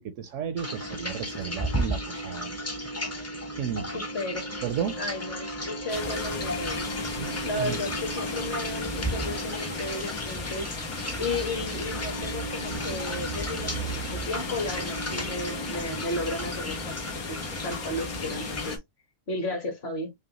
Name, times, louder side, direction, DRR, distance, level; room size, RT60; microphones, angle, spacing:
voice 1, 0.0-2.6 3.6-4.0 4.6-5.0 7.2-7.8, right 8 dB, 70° right, 0.8 m, -33 dB
sound 1, 0.6-18.8, equal, 20° left, 0.4 m, -34 dB
sound 2, 3.7-9.4, left 7 dB, 65° left, 0.9 m, -47 dB
voice 2, 3.9-4.5 5.0-6.9 7.4-10.7 11.2-18.8 19.3-20.1, left 2 dB, 50° left, 1.2 m, -34 dB
sound 3, 5.9-18.8, left 3 dB, 85° left, 1.6 m, -36 dB
5.3 x 2.2 x 2.7 m
omnidirectional pair, 1.5 m